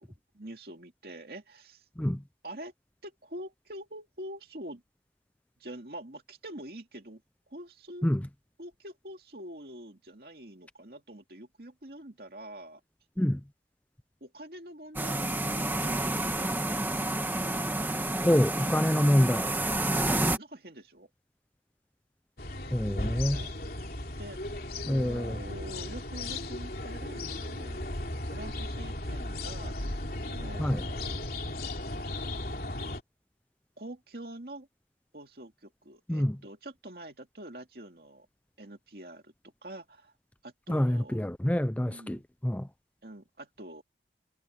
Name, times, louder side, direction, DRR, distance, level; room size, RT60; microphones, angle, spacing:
voice 1, 0.3-1.8 2.4-2.7 3.0-4.8 5.6-7.2 7.5-8.0 8.6-12.8 14.2-16.3 19.8-21.1 23.2-23.6 24.2-27.8 28.3-29.7 30.2-31.3 33.8-34.7 35.1-38.3 38.6-40.1 40.4-41.2 41.9-42.2 43.0-43.8, right 1 dB, 60° right, 2.6 m, -45 dB
sound 1, 15.0-20.4, right 1 dB, 10° right, 1.6 m, -29 dB
voice 2, 18.2-19.5 22.7-23.4 24.9-25.4 30.6-30.8 36.1-36.4 40.7-42.7, equal, 10° left, 0.5 m, -26 dB
sound 2, 22.4-33.0, left 1 dB, 55° left, 3.2 m, -36 dB
head